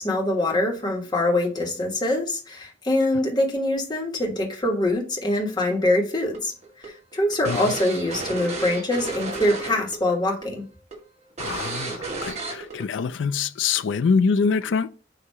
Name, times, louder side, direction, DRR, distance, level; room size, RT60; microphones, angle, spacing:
voice 1, 0.0-6.5 6.8-10.6, left 1 dB, 20° left, 1.6 m, -24 dB
sound 1, 6.3-10.0 10.2-10.5 10.9-11.0 11.4-12.8, right 3 dB, 35° right, 1.8 m, -32 dB
voice 2, 11.4-14.9, left 5 dB, 70° left, 0.4 m, -24 dB
6.4 x 2.9 x 5.4 m
head